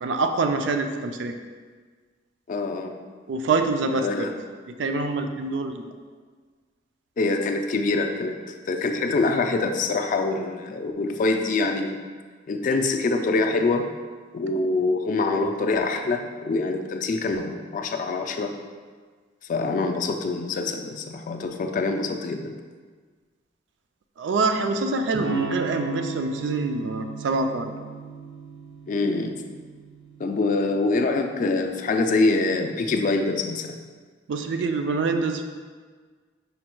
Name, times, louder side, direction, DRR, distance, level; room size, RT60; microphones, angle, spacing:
voice 1, 0.0-1.3 3.3-4.3 4.8-5.8 24.2-27.7 34.3-35.4, right 3 dB, 70° right, 6 dB, 0.4 m, -25 dB
voice 2, 2.5-3.0 3.9-4.3 7.2-8.4 8.7-12.0 12.5-13.9 14.3-18.5 19.5-22.5 28.9-29.4 30.2-33.8, left 3 dB, 40° left, 5 dB, 0.3 m, -25 dB
Electric guitar / Strum, 25.1-30.9, right 4 dB, 85° right, 1.1 m, -37 dB
5.1 x 2.2 x 4.4 m, 1.5 s
head